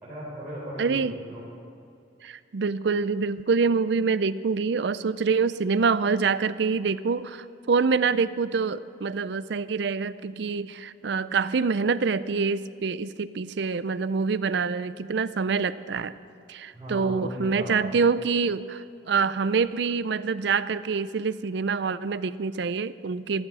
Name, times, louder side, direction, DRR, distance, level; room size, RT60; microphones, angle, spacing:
voice 1, 0.0-1.4 16.7-18.0, equal, 10° right, -11 dB, 4.3 m, -37 dB
voice 2, 0.8-1.1 2.2-16.1 16.5-23.5, right 5 dB, 60° right, 15 dB, 0.4 m, -26 dB
14.5 x 13.5 x 6.2 m, 2.6 s
head